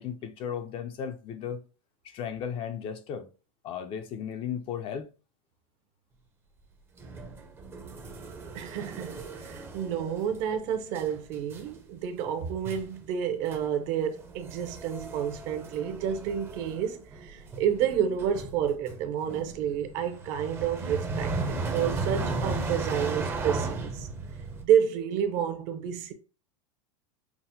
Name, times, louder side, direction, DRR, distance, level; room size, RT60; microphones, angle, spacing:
voice 1, 0.0-1.6 2.0-3.3 3.6-5.1, left 8 dB, 30° left, 0.5 m, -35 dB
sound 1, 7.0-10.6 10.9-11.2 11.5-11.8 12.2-12.3 12.6-13.0 13.5-13.7 13.9-24.6, right 3 dB, 15° right, 0.6 m, -36 dB
voice 2, 8.5-24.1 24.6-26.1, right 8 dB, 50° right, 0.7 m, -30 dB
5.9 x 2.0 x 2.7 m
supercardioid pair, 145°, 17 cm